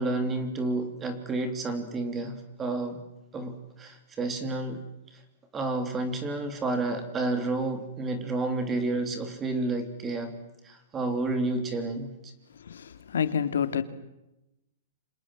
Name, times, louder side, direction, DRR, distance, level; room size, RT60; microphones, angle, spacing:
voice 1, 0.0-3.0 3.3-4.8 5.5-10.4 10.6-12.3, right 2 dB, 10° right, 3.1 m, -30 dB
voice 2, 12.7-13.8, left 7 dB, 85° left, 2.9 m, -28 dB
29.0 x 27.0 x 7.6 m
hypercardioid pair, 175°, 0 cm